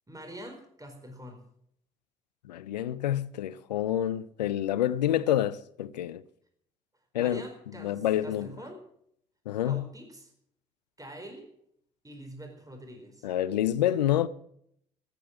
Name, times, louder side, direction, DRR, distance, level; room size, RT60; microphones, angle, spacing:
voice 1, 0.1-1.4 7.2-8.8 9.6-10.3 11.0-11.5 12.0-13.3, equal, 15° right, 4.5 m, -44 dB
voice 2, 2.5-6.2 7.1-7.4 7.8-8.5 9.5-9.9 13.2-14.3, left 12 dB, 90° left, 0.5 m, -28 dB
14.5 x 11.5 x 7.4 m
hypercardioid pair, 45°, 21 cm